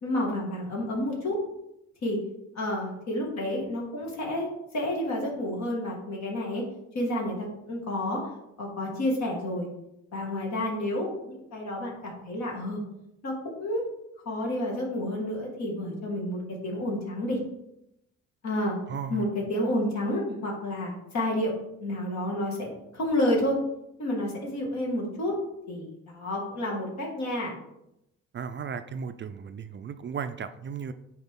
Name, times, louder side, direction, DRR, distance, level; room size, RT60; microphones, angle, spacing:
voice 1, 0.0-1.4 2.0-2.2 2.6-4.5 4.7-6.6 6.9-8.2 8.6-9.7 10.1-12.8 13.2-13.3 13.6-13.8 14.3-17.4 18.4-18.8 19.1-21.5 21.8-23.6 24.0-25.4 25.7-27.5, left 1 dB, 65° left, -2 dB, 2.1 m, -30 dB
voice 2, 18.9-19.3 28.3-30.9, right 6 dB, 40° right, 10 dB, 0.4 m, -35 dB
7.8 x 4.4 x 3.7 m, 0.83 s
cardioid pair, 90°, 30 cm